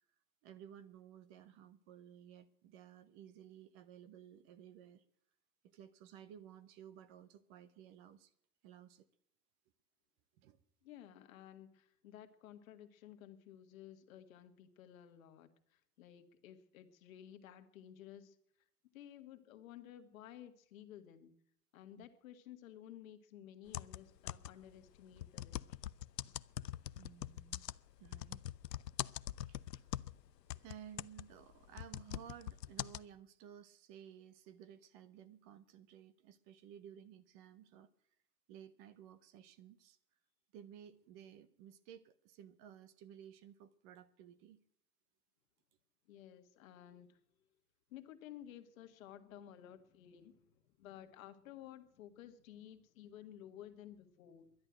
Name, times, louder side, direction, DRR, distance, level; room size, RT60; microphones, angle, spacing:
voice 1, 0.4-5.0 5.6-8.3 8.6-9.1 10.4-10.6 22.0-22.1 27.0-27.7 28.0-28.4 29.5-29.9 30.5-37.9 38.5-40.0 40.5-44.6, right 9 dB, 25° right, 0.6 m, -56 dB
voice 2, 10.8-18.4 18.9-21.4 21.7-25.7 46.1-47.2 47.9-54.5, left 11 dB, 55° left, 1.7 m, -55 dB
sound 1, 23.7-24.7 25.2-30.2 30.5-33.0, left 12 dB, 85° left, 0.6 m, -43 dB
11.5 x 10.5 x 9.0 m
hypercardioid pair, 110°, 48 cm